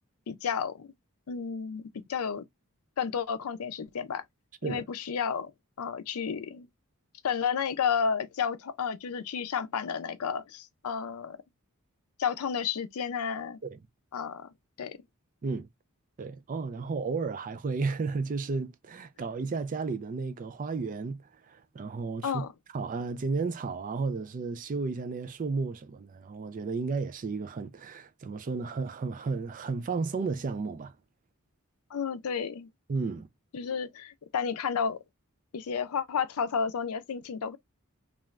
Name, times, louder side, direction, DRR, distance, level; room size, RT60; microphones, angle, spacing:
voice 1, 0.3-0.9 1.3-2.4 3.0-4.2 4.6-5.5 5.8-6.7 7.2-11.4 12.2-13.6 14.1-14.5 14.8-15.0 22.2-22.5 31.9-32.7 33.5-35.0 35.5-37.6, left 6 dB, 80° left, 0.5 m, -31 dB
voice 2, 16.2-21.2 21.5-22.4 22.7-30.9 32.9-33.3, right 4 dB, 40° right, 0.4 m, -33 dB
3.1 x 2.4 x 2.3 m
head